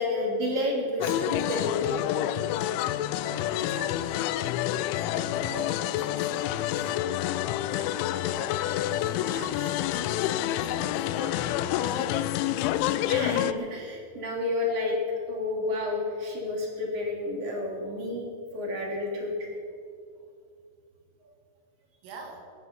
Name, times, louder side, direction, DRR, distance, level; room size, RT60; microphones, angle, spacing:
voice 1, 0.0-2.0 12.9-15.0 15.3-18.3 18.5-19.5, left 2 dB, 35° right, -1 dB, 3.3 m, -30 dB
sound 1, 1.0-13.5, left 12 dB, 85° left, 2.7 m, -28 dB
voice 2, 3.2-7.0 7.8-10.1 10.4-12.4 12.8-12.9 22.0-22.5, right 3 dB, 75° right, 2 dB, 4.9 m, -45 dB
23.5 x 11.0 x 5.4 m, 2.3 s
omnidirectional pair, 5.9 m